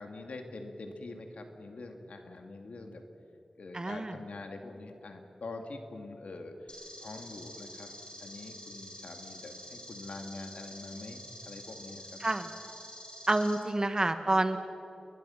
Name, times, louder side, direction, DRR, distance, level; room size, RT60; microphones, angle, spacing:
voice 1, 0.0-3.0 3.6-7.9 8.2-12.2, left 2 dB, 85° left, 4 dB, 2.3 m, -44 dB
voice 2, 3.7-4.1 12.2-12.5 13.3-14.6, right 2 dB, 35° right, 8 dB, 1.6 m, -28 dB
sound 1, 6.7-13.5, left 1 dB, 50° left, 7.7 m, -47 dB
29.5 x 21.5 x 5.8 m, 3.0 s
wide cardioid pair, 75°, 2 cm